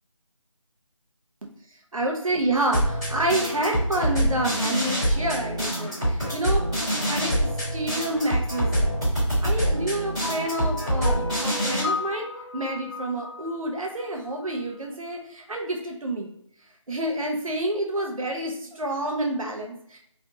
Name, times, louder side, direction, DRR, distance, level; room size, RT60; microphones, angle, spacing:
voice 1, 1.9-9.0 9.4-12.3 12.5-16.3 16.9-20.0, right 1 dB, 85° right, 1 dB, 0.9 m, -28 dB
sound 1, 2.7-11.8, equal, 10° right, 1.2 m, -25 dB
sound 2, 10.2-14.6, left 3 dB, 40° left, 0.6 m, -34 dB
3.4 x 2.4 x 2.7 m, 0.68 s
figure-of-eight pair, 175°, 17 cm